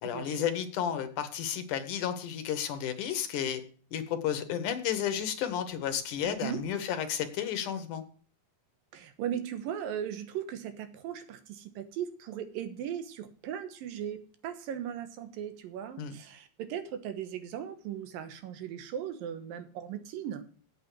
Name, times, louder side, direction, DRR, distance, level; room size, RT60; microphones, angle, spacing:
voice 1, 0.0-3.6 3.9-8.0 16.0-16.2, left 9 dB, 70° left, 9 dB, 2.4 m, -32 dB
voice 2, 6.2-6.8 8.9-20.4, right 9 dB, 90° right, 8 dB, 2.9 m, -38 dB
8.4 x 7.4 x 7.5 m, 0.42 s
omnidirectional pair, 4.0 m